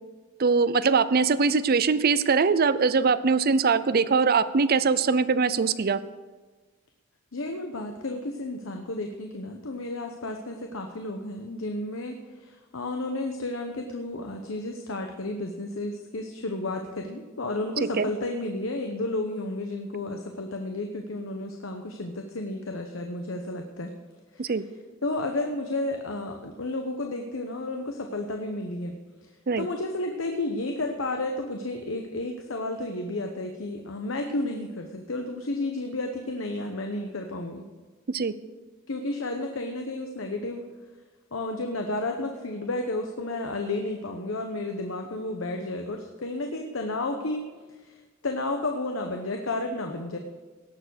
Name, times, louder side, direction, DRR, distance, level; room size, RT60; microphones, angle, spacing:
voice 1, 0.4-6.0 18.0-18.1 24.4-24.6 29.5-29.7 38.1-38.3, right 5 dB, 50° right, 15 dB, 0.5 m, -22 dB
voice 2, 7.3-23.9 24.3-24.5 25.0-28.9 29.2-29.3 29.6-37.6 38.9-40.6 41.3-47.5 47.7-50.2, left 2 dB, 75° left, 4 dB, 1.0 m, -32 dB
17.5 x 7.0 x 6.4 m, 1.3 s
head